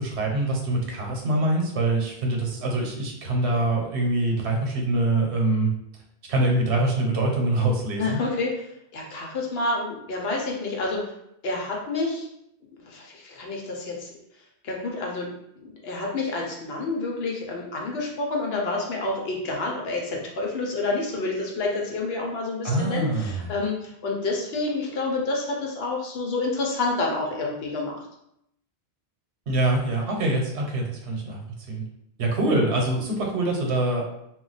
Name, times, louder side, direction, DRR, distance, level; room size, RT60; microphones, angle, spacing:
voice 1, 0.0-5.7 6.3-8.2 22.6-23.5 29.5-31.4 31.7-31.8 32.2-34.0, right 2 dB, 85° right, 0 dB, 1.0 m, -24 dB
voice 2, 8.0-8.6 8.9-11.1 11.4-12.3 12.8-14.1 14.6-15.3 15.6-27.9, left 3 dB, 70° left, -1 dB, 0.9 m, -28 dB
2.3 x 2.2 x 3.9 m, 0.77 s
omnidirectional pair, 1.1 m